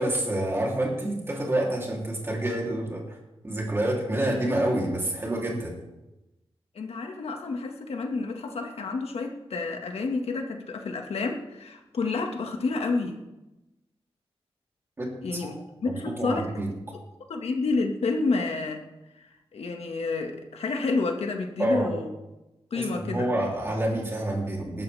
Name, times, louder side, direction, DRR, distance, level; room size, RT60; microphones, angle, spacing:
voice 1, 0.0-3.2 3.4-5.8 15.0-15.1 15.4-15.5 15.9-16.7 21.6-21.9 22.7-24.8, right 1 dB, 25° right, -1 dB, 3.4 m, -28 dB
voice 2, 6.7-13.2 15.2-15.6 15.8-16.5 17.3-18.8 19.2-22.1 22.7-23.3, left 3 dB, 75° left, 3 dB, 1.9 m, -29 dB
19.5 x 13.0 x 3.6 m, 0.98 s
wide cardioid pair, 170°, 10 cm